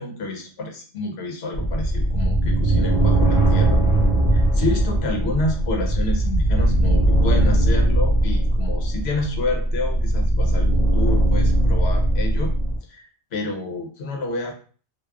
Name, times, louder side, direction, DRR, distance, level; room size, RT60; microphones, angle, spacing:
voice 1, 0.0-3.8 4.3-12.5 12.9-14.5, left 2 dB, 75° left, 2 dB, 0.9 m, -29 dB
sound 1, 1.5-12.8, right 1 dB, 90° left, 1.1 m, -19 dB
2.9 x 2.1 x 2.3 m, 0.40 s
omnidirectional pair, 1.1 m